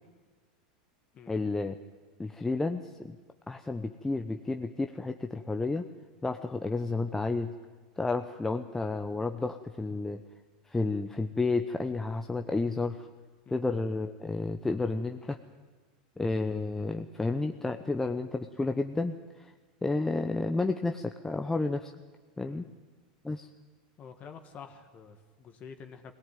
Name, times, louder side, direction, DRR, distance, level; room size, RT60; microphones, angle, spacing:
voice 1, 1.3-1.7 2.2-3.2 3.5-5.9 6.2-7.5 8.0-10.2 10.7-13.1 13.5-15.4 16.2-19.5 19.8-21.9 22.4-22.7 23.2-23.5, left 3 dB, 10° left, 6 dB, 0.9 m, -31 dB
voice 2, 24.0-26.1, left 6 dB, 35° left, 6 dB, 1.8 m, -48 dB
21.0 x 17.5 x 9.3 m, 1.3 s
supercardioid pair, 115°, 4 cm